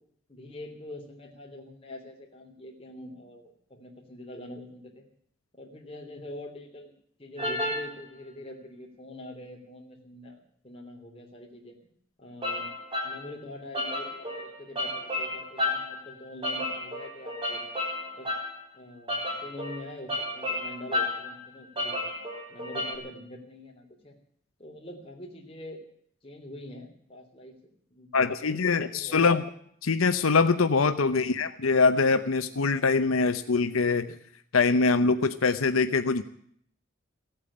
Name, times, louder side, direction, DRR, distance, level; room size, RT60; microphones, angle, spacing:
voice 1, 0.3-5.0 5.5-6.9 7.2-11.9 12.2-12.7 13.0-17.6 18.1-18.3 18.7-22.2 22.5-24.1 24.6-25.8 26.2-27.6 27.9-29.2 31.1-31.4, left 1 dB, 25° left, 1 dB, 3.3 m, -44 dB
sound 1, 7.4-7.9 12.4-13.2 13.7-16.0 16.4-18.5 19.1-21.3 21.8-22.9, left 1 dB, 25° right, 3.8 m, -32 dB
voice 2, 28.1-29.4 29.8-34.2 34.5-36.2, left 4 dB, 90° left, 10 dB, 0.8 m, -23 dB
16.0 x 8.9 x 9.8 m, 0.64 s
head